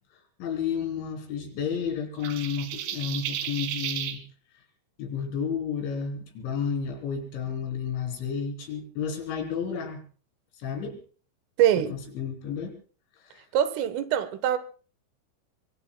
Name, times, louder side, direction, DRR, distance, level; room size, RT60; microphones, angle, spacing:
voice 1, 0.4-4.2 5.0-10.0 10.6-11.0 11.9-12.7 13.2-13.4, left 6 dB, 70° left, 5.6 m, -31 dB
sound 1, 2.2-4.2, right 10 dB, 70° right, 3.7 m, -33 dB
voice 2, 11.6-12.0 13.5-14.6, right 10 dB, 85° right, 3.8 m, -23 dB
25.0 x 23.5 x 2.2 m
omnidirectional pair, 5.6 m